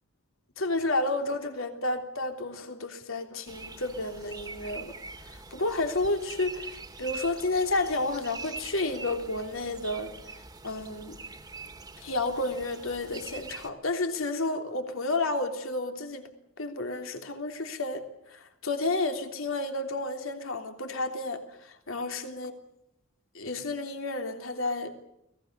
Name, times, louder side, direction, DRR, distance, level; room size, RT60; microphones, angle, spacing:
voice 1, 0.6-4.9 5.3-10.1 10.6-11.2 12.0-16.3 16.6-22.5 23.3-24.9, left 2 dB, 65° left, 3.3 m, -31 dB
sound 1, 3.5-13.7, right 3 dB, 20° right, 2.1 m, -44 dB
29.5 x 20.0 x 6.8 m
head